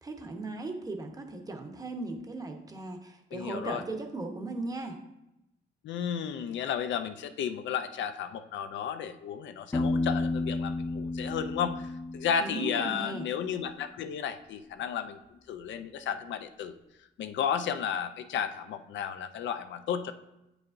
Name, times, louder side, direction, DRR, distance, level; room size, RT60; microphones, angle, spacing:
voice 1, 0.0-5.0 12.4-13.3, right 2 dB, 20° right, 4 dB, 0.9 m, -37 dB
voice 2, 3.3-3.8 5.8-15.2 15.5-16.8 17.2-20.1, left 8 dB, 70° left, 10 dB, 0.5 m, -33 dB
Piano, 9.7-13.4, left 2 dB, 10° left, 0.3 m, -32 dB
8.3 x 4.8 x 2.6 m, 0.90 s
cardioid pair, 90°, 20 cm